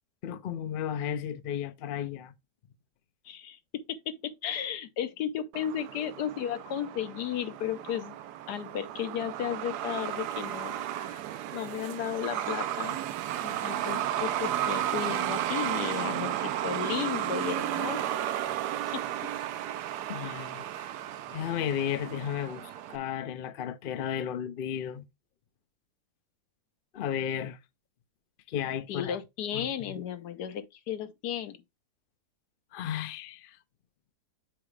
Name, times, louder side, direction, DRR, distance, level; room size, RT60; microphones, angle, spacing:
voice 1, 0.2-2.3 20.1-20.7 21.3-25.0 26.9-27.6 28.5-29.2 29.5-30.0 32.7-33.6, left 9 dB, 60° left, 0.5 m, -34 dB
voice 2, 3.2-8.2 8.5-11.2 11.5-13.0 13.4-18.0 18.8-19.1 28.9-31.6, left 9 dB, 80° left, 1.4 m, -34 dB
Truck, 5.5-23.0, right 11 dB, 85° right, 1.2 m, -33 dB
7.4 x 4.8 x 3.3 m
omnidirectional pair, 1.7 m